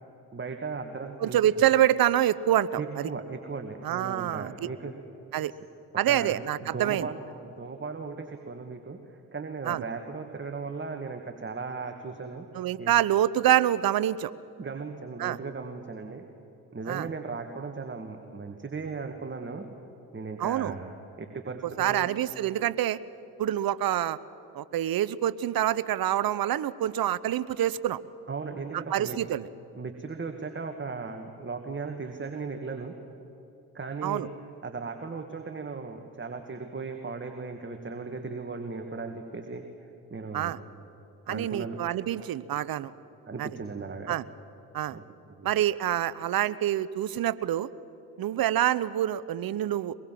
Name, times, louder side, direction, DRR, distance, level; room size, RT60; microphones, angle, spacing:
voice 1, 0.3-1.4 2.8-4.9 6.1-12.5 12.8-12.9 14.6-16.3 16.7-19.7 20.1-22.1 28.3-29.2 29.7-32.9 33.7-34.3 34.6-40.6 41.3-41.8 43.3-44.2 44.9-45.0 45.3-45.5, right 4 dB, 25° right, 5 dB, 2.0 m, -37 dB
voice 2, 1.2-3.1 3.8-4.5 5.3-5.5 6.0-7.1 9.7-9.8 12.5-14.3 15.2-15.4 16.9-17.1 20.4-20.7 21.8-23.0 23.4-24.2 24.5-28.0 28.9-29.5 34.0-34.3 40.3-40.6 41.3-42.9 43.4-43.5 44.1-44.2 44.7-45.0 45.4-47.7 48.2-50.0, right 12 dB, 50° right, 18 dB, 0.9 m, -26 dB
24.0 x 22.0 x 7.7 m, 3.0 s
hypercardioid pair, 55°, 44 cm